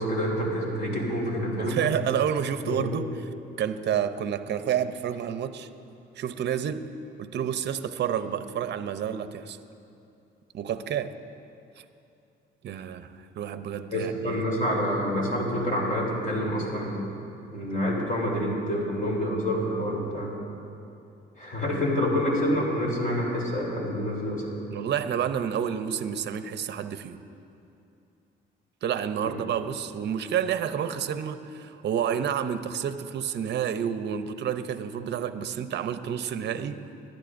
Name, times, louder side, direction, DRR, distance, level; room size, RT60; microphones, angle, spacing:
voice 1, 0.0-1.8 2.6-2.9 13.9-17.0 17.5-20.3 21.4-24.5, equal, 40° left, -3 dB, 3.4 m, -27 dB
voice 2, 1.6-3.1 3.6-5.7 6.1-6.9 7.2-9.6 10.5-11.2 12.6-14.4 24.7-27.2 28.8-36.8, right 8 dB, 60° right, 11 dB, 0.6 m, -29 dB
20.5 x 11.5 x 2.6 m, 2.6 s
cardioid pair, 90°, 20 cm